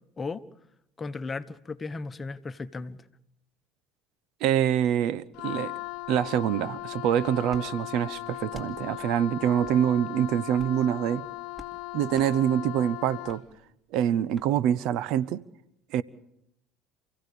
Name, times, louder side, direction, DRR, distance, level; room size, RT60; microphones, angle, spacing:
voice 1, 1.0-3.0, left 4 dB, 25° left, 1.2 m, -35 dB
voice 2, 4.4-5.7 6.1-11.3 11.9-13.4 13.9-15.4 15.9-16.0, right 10 dB, 65° right, 0.7 m, -25 dB
Wind instrument woodwind instrument, 5.3-13.5, left 20 dB, 65° left, 1.0 m, -38 dB
sound 1, 7.5-7.7 8.5-8.7 9.6-9.8 10.5-10.8 11.5-11.8 12.1-12.3 13.3-13.4 14.3-14.5, left 1 dB, 10° right, 3.4 m, -48 dB
28.5 x 16.0 x 6.9 m
hypercardioid pair, 75°, 0 cm